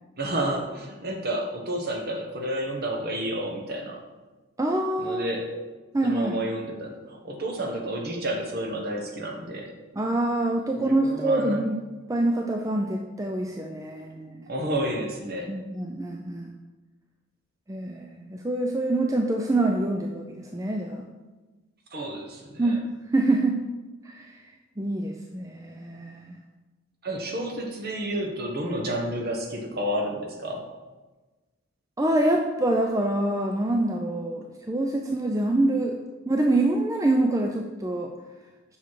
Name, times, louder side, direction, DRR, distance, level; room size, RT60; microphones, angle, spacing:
voice 1, 0.2-4.0 5.0-5.5 6.0-9.7 10.8-11.6 14.5-15.5 21.9-22.8 27.0-30.7, right 1 dB, 50° right, 1 dB, 1.2 m, -30 dB
voice 2, 4.6-5.2 5.9-6.4 9.9-11.8 12.1-14.5 15.5-16.5 17.7-21.1 22.6-22.8 23.1-23.6 24.0-24.4 24.8-26.4 32.0-36.0 36.3-38.1, right 2 dB, 15° right, 2 dB, 0.4 m, -25 dB
7.1 x 5.7 x 4.8 m, 1.2 s
head